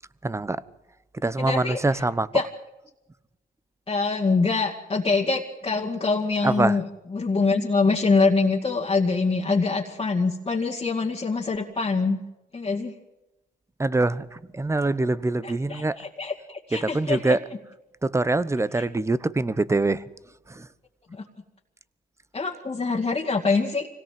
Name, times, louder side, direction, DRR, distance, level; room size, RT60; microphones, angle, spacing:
voice 1, 0.2-0.6 1.2-2.4 6.4-6.8 13.8-16.0 16.7-17.4 18.0-20.0 20.5-20.7, right 2 dB, 15° right, 0.9 m, -24 dB
voice 2, 1.4-2.0 2.3-2.5 3.9-6.8 7.1-12.2 12.5-12.9 15.4-17.4 18.8-18.9 22.3-23.9, left 4 dB, 25° left, 2.1 m, -24 dB
25.5 x 17.5 x 7.6 m
cardioid pair, 90°, 20 cm